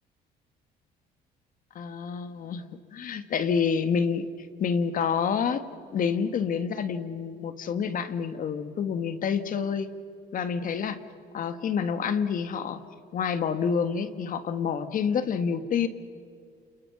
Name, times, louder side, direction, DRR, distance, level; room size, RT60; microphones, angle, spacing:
voice 1, 1.7-2.6 2.9-4.3 4.6-5.6 5.9-9.9 10.3-11.0 11.3-12.8 13.1-15.9, left 6 dB, 55° left, 10 dB, 1.7 m, -28 dB
29.5 x 28.0 x 6.1 m, 2.2 s
cardioid pair, 110°, 17 cm